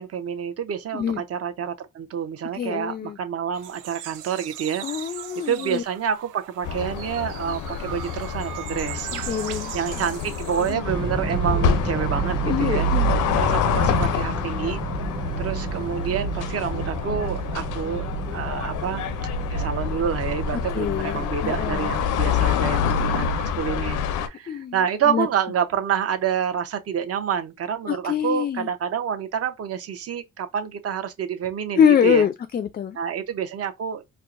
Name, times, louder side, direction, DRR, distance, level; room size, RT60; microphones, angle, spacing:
voice 1, 0.0-4.8 5.5-9.1 9.7-12.9 13.4-14.8 15.4-19.0 19.5-32.3 32.9-34.0, right 8 dB, 50° right, 0.7 m, -28 dB
voice 2, 2.5-3.2 4.8-5.8 9.1-9.7 10.7-10.8 12.5-13.1 20.5-22.0 24.5-24.7 25.1-25.3 27.9-28.7 31.8-33.0, left 8 dB, 30° left, 0.4 m, -24 dB
sound 1, 3.5-10.7, right 12 dB, 85° right, 0.5 m, -38 dB
sound 2, 6.6-24.3, left 8 dB, 85° left, 0.6 m, -27 dB
sound 3, 10.9-23.8, right 6 dB, 15° right, 0.6 m, -30 dB
4.5 x 2.1 x 2.5 m
cardioid pair, 90°, 30 cm